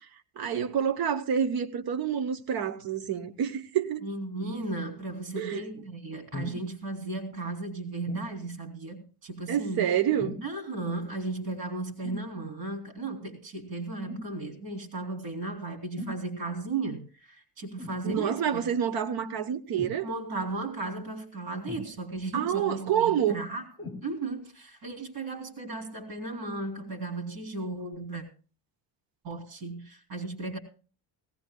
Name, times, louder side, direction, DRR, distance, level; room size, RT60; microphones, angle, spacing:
voice 1, 0.4-4.0 5.3-5.6 9.5-10.4 18.0-20.1 22.3-23.4, right 8 dB, 55° right, 1.0 m, -28 dB
voice 2, 4.0-9.9 10.4-18.6 20.0-23.6 24.0-28.2 29.2-30.6, right 3 dB, 90° right, 3.4 m, -35 dB
sound 1, 6.3-6.7 8.1-8.3 10.2-10.6 12.0-12.3 14.1-14.3 16.0-16.2 17.8-18.0 19.7-20.0 21.7-22.2 23.8-24.0 24.9-25.0, left 1 dB, 10° left, 3.0 m, -38 dB
18.0 x 17.0 x 2.2 m
cardioid pair, 170°, 43 cm